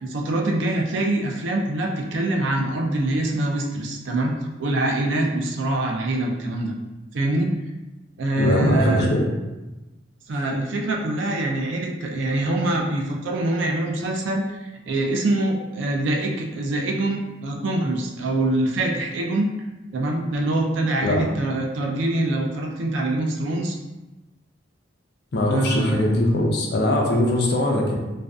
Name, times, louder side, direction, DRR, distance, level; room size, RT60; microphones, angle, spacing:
voice 1, 0.0-6.7 7.1-7.5 8.2-9.1 10.3-19.5 19.9-23.8 25.5-26.0, right 2 dB, 80° right, 0 dB, 0.4 m, -24 dB
voice 2, 8.4-9.2 21.0-21.2 25.3-28.0, left 1 dB, 55° left, 0 dB, 0.4 m, -21 dB
2.5 x 2.2 x 2.3 m, 1.1 s
head